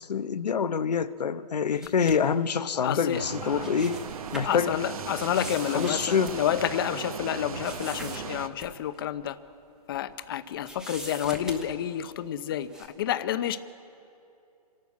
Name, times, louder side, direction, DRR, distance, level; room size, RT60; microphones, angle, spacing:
voice 1, 0.0-4.0 4.3-4.7 5.7-6.4, left 6 dB, 85° left, 13 dB, 0.8 m, -26 dB
sound 1, 1.7-2.3 3.4-4.6 5.2-6.8 7.6-8.2 8.6-8.7 9.1-9.2 9.9-10.3 10.6-11.9 12.6-12.9, equal, 5° right, 1.0 m, -43 dB
voice 2, 2.7-3.7 4.4-9.4 9.9-12.7 13.0-13.6, left 10 dB, 35° left, 13 dB, 0.6 m, -29 dB
sound 2, 3.1-8.5, right 7 dB, 60° right, 1.0 m, -37 dB
26.0 x 12.0 x 8.4 m, 2.7 s
hypercardioid pair, 155°, 20 cm